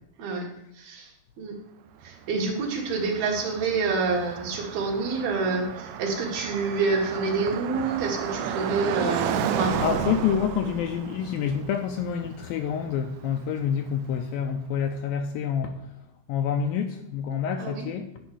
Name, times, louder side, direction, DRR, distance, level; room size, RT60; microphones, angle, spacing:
voice 1, 0.8-1.1 1.4-1.6 2.0-9.8 17.6-17.9, right 4 dB, 65° right, 0 dB, 3.6 m, -27 dB
Car passing by, 2.0-14.0, right 9 dB, 80° right, 1.9 m, -33 dB
voice 2, 9.8-15.9 16.3-18.1, left 8 dB, 80° left, 6 dB, 2.2 m, -27 dB
11.5 x 5.7 x 8.5 m, 0.79 s
omnidirectional pair, 4.7 m